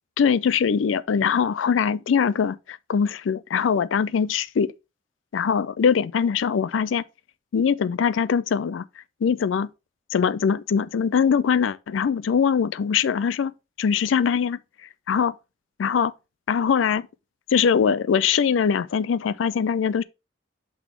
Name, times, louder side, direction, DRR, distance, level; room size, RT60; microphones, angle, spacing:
voice 1, 0.2-4.7 5.3-7.0 7.5-8.8 9.2-9.7 10.1-13.5 13.8-14.6 15.1-15.3 15.8-16.1 16.5-17.1 17.5-20.0, left 6 dB, 85° left, 0.4 m, -22 dB
6.0 x 3.6 x 4.4 m
head